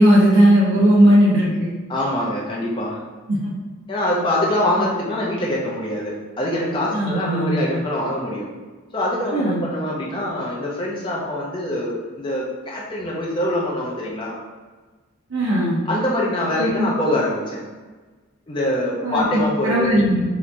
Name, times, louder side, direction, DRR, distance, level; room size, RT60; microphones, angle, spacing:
voice 1, 0.0-1.7 3.3-3.4 4.8-4.9 6.9-7.6 9.3-9.6 15.3-15.8 16.6-16.7 19.0-20.2, equal, 65° right, -5 dB, 0.5 m, -17 dB
voice 2, 1.9-3.0 3.9-8.5 8.9-14.4 15.8-17.6 18.5-20.0, left 1 dB, 25° left, -4 dB, 0.4 m, -24 dB
3.2 x 2.8 x 2.5 m, 1.3 s
head